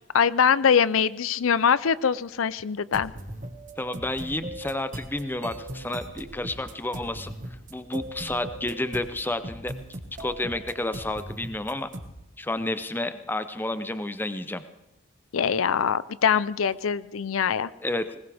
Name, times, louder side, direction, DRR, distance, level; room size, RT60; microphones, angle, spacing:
voice 1, 0.1-3.1 15.3-17.7, left 7 dB, 85° left, 17 dB, 0.5 m, -23 dB
sound 1, 2.8-12.2, right 1 dB, 40° right, 1.6 m, -39 dB
voice 2, 3.8-7.3 7.7-9.7 10.2-11.9 12.4-14.6 17.8-18.2, left 1 dB, 10° left, 11 dB, 0.6 m, -30 dB
20.5 x 20.5 x 3.5 m, 0.98 s
head